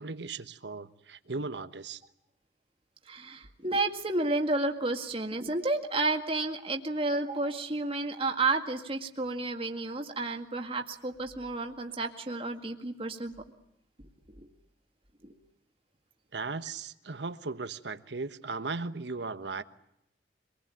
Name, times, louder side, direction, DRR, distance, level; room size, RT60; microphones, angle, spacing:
voice 1, 0.0-2.0 16.3-19.6, right 3 dB, 70° right, 12 dB, 1.2 m, -37 dB
voice 2, 3.1-13.3 14.3-14.5 15.2-15.3, right 2 dB, 30° right, 4 dB, 2.0 m, -31 dB
25.5 x 20.0 x 9.0 m, 0.84 s
head